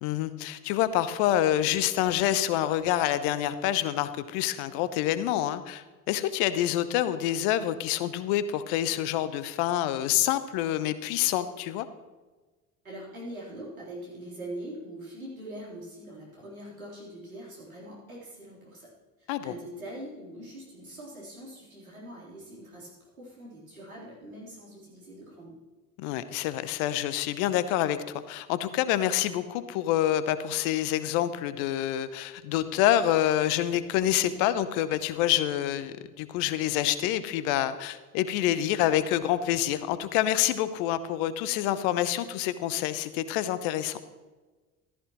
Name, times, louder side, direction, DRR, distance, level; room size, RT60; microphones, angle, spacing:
voice 1, 0.0-11.9 19.3-19.5 26.0-44.0, left 12 dB, 60° left, 13 dB, 0.9 m, -27 dB
voice 2, 12.8-18.9 19.2-25.6, right 1 dB, 90° right, -6 dB, 3.9 m, -43 dB
14.5 x 13.5 x 3.1 m, 1.3 s
figure-of-eight pair, 55°, 41 cm